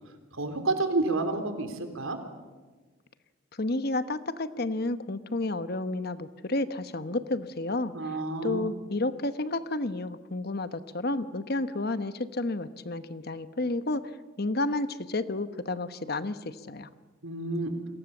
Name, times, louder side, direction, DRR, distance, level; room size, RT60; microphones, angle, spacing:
voice 1, 0.3-2.2 7.9-8.6 17.2-17.7, right 2 dB, 80° right, 6 dB, 3.7 m, -29 dB
voice 2, 3.6-8.2 8.4-14.0 14.4-16.9, left 2 dB, 50° left, 12 dB, 1.1 m, -31 dB
30.0 x 22.5 x 7.3 m, 1.3 s
head